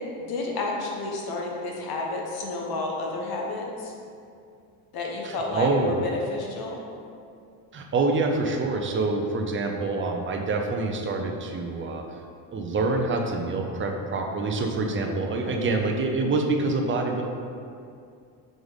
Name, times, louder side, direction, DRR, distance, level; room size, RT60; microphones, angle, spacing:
voice 1, 0.2-3.9 4.9-6.8 15.4-15.7, left 2 dB, 50° left, -1 dB, 1.2 m, -31 dB
voice 2, 5.2-6.0 7.7-12.0 12.5-17.2, right 3 dB, 25° right, 2 dB, 0.6 m, -26 dB
5.2 x 4.7 x 4.0 m, 2.4 s
cardioid pair, 110°, 47 cm